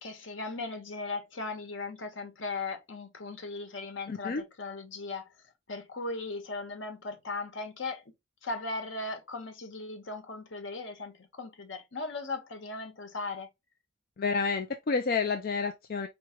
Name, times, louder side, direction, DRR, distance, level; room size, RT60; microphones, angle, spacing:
voice 1, 0.0-5.3 5.7-8.0 8.4-13.5, left 3 dB, 80° left, 1.1 m, -38 dB
voice 2, 4.1-4.4 14.2-16.1, left 4 dB, 50° left, 0.5 m, -29 dB
4.6 x 3.0 x 2.9 m
head